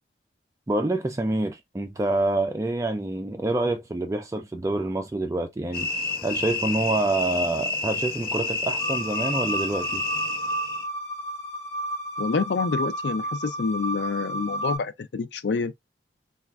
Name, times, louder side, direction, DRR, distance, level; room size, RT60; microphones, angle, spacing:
voice 1, 0.7-5.9 6.2-10.0, right 2 dB, 15° right, 0.3 m, -27 dB
sound 1, 5.7-10.8, left 3 dB, 55° left, 0.9 m, -29 dB
sound 2, 8.8-14.8, right 1 dB, 30° left, 0.9 m, -32 dB
voice 2, 12.2-15.7, left 4 dB, 75° left, 0.4 m, -27 dB
4.1 x 2.4 x 2.3 m
head